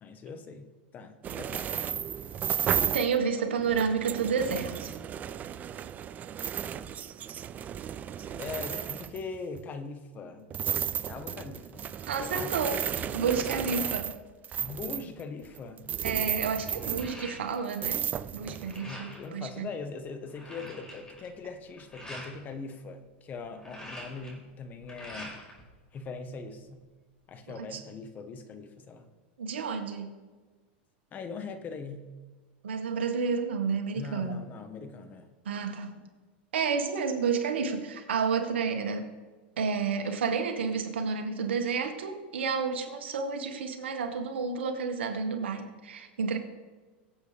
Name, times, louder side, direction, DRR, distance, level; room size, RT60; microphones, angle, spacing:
voice 1, 0.0-1.9 8.2-12.6 14.5-15.9 18.8-25.4 25.9-26.8 27.3-29.0 31.1-32.1 33.9-35.3, left 4 dB, 30° left, 8 dB, 1.4 m, -41 dB
sound 1, 1.2-3.2 3.6-9.6 10.5-17.4 17.7-18.8, right 9 dB, 30° right, 0.5 m, -34 dB
voice 2, 2.9-4.9 12.1-12.9 13.1-14.1 16.0-19.7 27.6-27.8 29.4-30.1 32.6-34.4 35.5-35.9 36.5-39.1 39.6-46.4, right 5 dB, 90° right, 5 dB, 1.8 m, -30 dB
sound 2, 15.7-15.8 16.1-17.9 18.1-19.3 19.8-19.9 20.1-22.3 23.4-25.6 26.0-26.8, equal, 10° left, 4.8 m, -45 dB
23.0 x 8.0 x 3.5 m, 1.3 s
hypercardioid pair, 125°, 6 cm